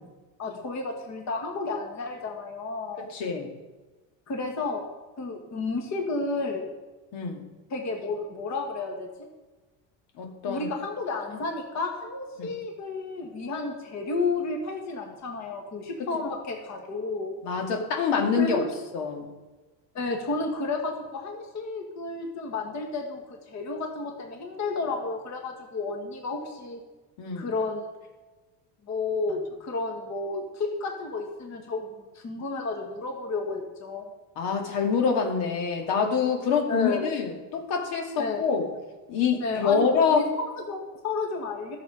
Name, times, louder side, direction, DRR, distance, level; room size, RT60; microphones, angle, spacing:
voice 1, 0.4-3.1 4.3-4.8 5.2-6.7 7.7-9.1 10.5-17.3 18.4-18.7 19.9-26.8 27.4-27.9 28.8-34.1 36.7-37.1 38.2-38.5 39.4-41.8, left 3 dB, 35° left, 2 dB, 1.9 m, -32 dB
voice 2, 3.0-3.5 7.1-7.4 10.2-10.7 12.4-12.5 17.4-18.6 18.9-19.3 27.2-27.5 34.4-38.7 39.1-40.2, left 6 dB, 70° left, 2 dB, 2.3 m, -26 dB
13.0 x 7.2 x 5.1 m, 1.2 s
cardioid pair, 130°, 45 cm